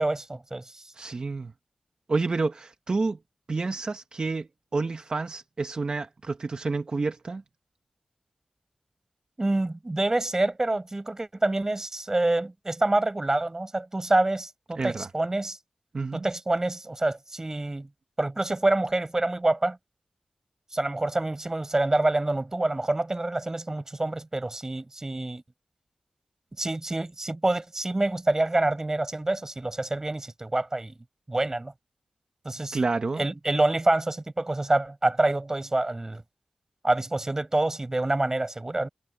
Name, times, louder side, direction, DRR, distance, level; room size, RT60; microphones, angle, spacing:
voice 1, 0.0-0.8 9.4-15.6 16.1-17.9 18.2-19.8 20.7-25.4 26.6-30.9 31.3-31.7 32.4-32.8 33.2-36.2 36.8-38.9, right 2 dB, 25° right, 4.6 m, -26 dB
voice 2, 0.9-1.5 2.1-3.2 3.5-7.4 14.8-15.1 15.9-16.2 32.7-33.2, right 3 dB, 45° right, 0.8 m, -29 dB
wide cardioid pair, 100°, 2 cm